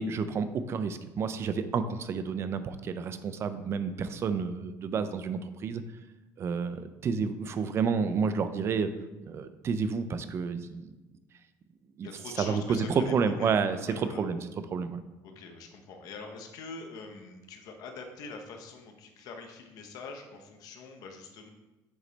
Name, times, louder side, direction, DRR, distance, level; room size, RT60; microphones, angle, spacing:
voice 1, 0.0-5.8 6.4-8.9 9.3-11.0 12.0-12.1 12.4-14.4 14.7-15.0, right 5 dB, 40° right, 11 dB, 0.5 m, -30 dB
voice 2, 12.0-14.2 15.2-21.5, left 4 dB, 65° left, 3 dB, 0.9 m, -44 dB
8.0 x 3.2 x 4.0 m, 1.1 s
cardioid pair, 130°, 7 cm